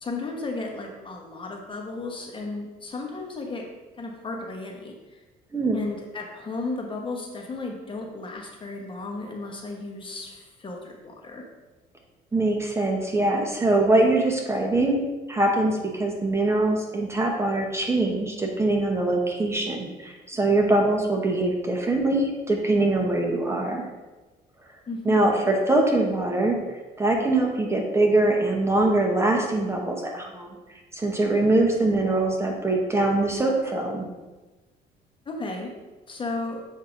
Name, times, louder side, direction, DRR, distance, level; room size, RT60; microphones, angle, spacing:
voice 1, 0.0-3.7 4.0-5.2 5.7-11.4 24.9-25.2 35.3-35.7 36.1-36.6, left 3 dB, 30° left, 1 dB, 1.1 m, -34 dB
voice 2, 5.5-5.8 12.3-15.0 15.3-23.9 25.0-30.6 30.9-34.1, right 2 dB, 15° right, 0 dB, 1.0 m, -23 dB
7.8 x 2.8 x 5.1 m, 1.2 s
cardioid pair, 110°, 17 cm